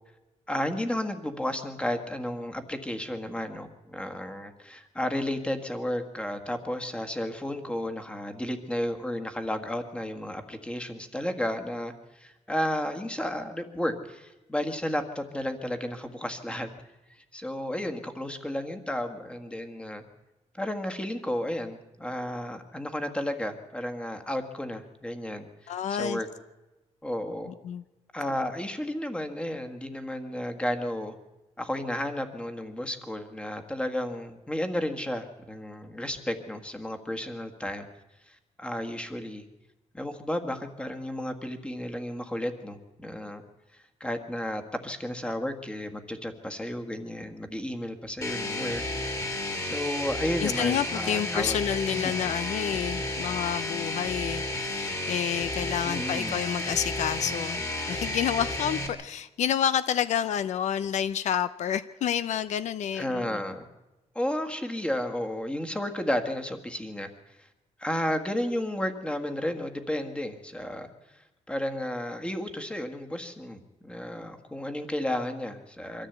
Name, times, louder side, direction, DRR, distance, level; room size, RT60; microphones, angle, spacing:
voice 1, 0.5-16.7 17.1-20.0 20.6-26.3 27.0-27.5 28.1-31.1 31.6-37.9 38.3-39.5 39.9-43.4 43.7-48.8 49.3-51.6 51.9-52.0 55.8-56.4 63.0-63.7 64.1-67.1 67.8-76.1, left 1 dB, 10° left, 6 dB, 1.6 m, -33 dB
voice 2, 25.7-26.2 27.6-27.8 50.4-57.6 57.9-63.4, left 9 dB, 70° left, 14 dB, 0.6 m, -29 dB
sound 1, 48.2-58.9, left 2 dB, 25° left, 2.7 m, -32 dB
24.0 x 14.0 x 8.1 m, 1.0 s
wide cardioid pair, 155°, 12 cm